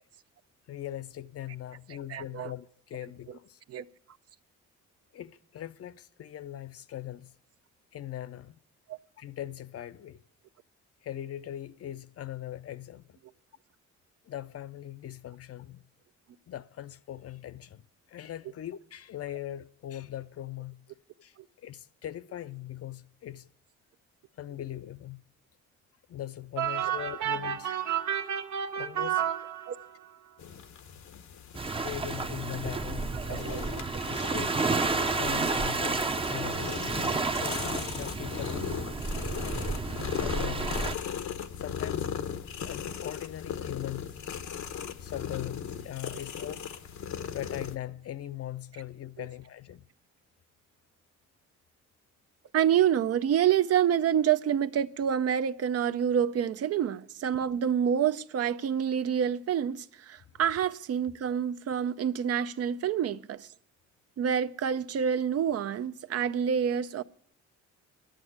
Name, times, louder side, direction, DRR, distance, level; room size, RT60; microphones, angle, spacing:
voice 1, 0.7-3.6 5.1-7.3 7.9-8.6 9.2-10.2 11.0-13.2 14.3-15.9 16.5-17.8 18.1-20.8 21.2-23.5 24.4-25.2 26.1-28.0 28.7-29.2 31.7-33.6 34.0-34.6 35.2-36.7 37.4-38.6 39.9-40.9 41.6-42.1 42.6-44.2 45.0-46.7 47.3-49.8, left 12 dB, 50° left, 0.6 m, -40 dB
voice 2, 2.1-2.5 3.7-3.8 8.9-9.0 29.7-29.8 33.3-33.6 52.5-63.5 64.2-67.0, right 9 dB, 55° right, 0.6 m, -27 dB
sound 1, 26.6-30.1, right 10 dB, 75° right, 0.9 m, -31 dB
sound 2, 30.4-47.7, left 8 dB, 70° left, 1.0 m, -38 dB
Waves surf, 31.5-40.9, right 3 dB, 20° right, 0.6 m, -31 dB
10.5 x 9.0 x 9.4 m
cardioid pair, 90°, 30 cm